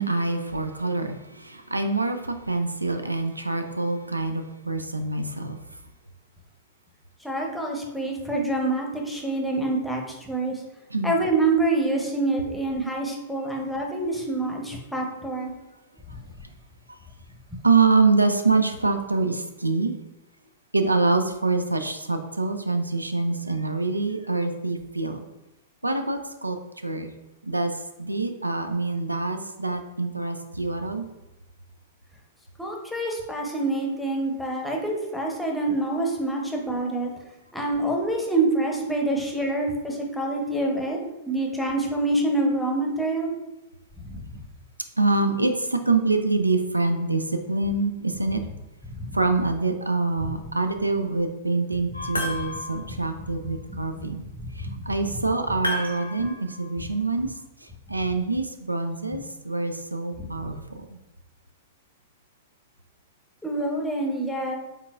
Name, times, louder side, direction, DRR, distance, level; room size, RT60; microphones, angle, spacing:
voice 1, 0.0-5.6 10.9-11.2 16.9-17.0 17.6-19.9 20.7-25.2 25.8-26.6 26.8-27.1 27.4-27.7 28.0-31.1 45.0-48.4 49.1-54.2 54.6-57.3 57.9-60.8, right 3 dB, 90° right, 7 dB, 0.3 m, -25 dB
voice 2, 7.2-10.5 11.0-15.5 32.6-37.1 37.5-41.0 41.3-43.3 44.1-44.2 49.0-49.1 50.2-50.3 52.9-53.0 54.6-54.7 63.4-64.6, right 2 dB, 5° left, 0 dB, 0.8 m, -26 dB
sound 1, 51.9-52.9 55.6-56.7, left 1 dB, 90° left, 0.8 m, -31 dB
4.5 x 3.7 x 2.4 m, 0.97 s
figure-of-eight pair, 100°, 0 cm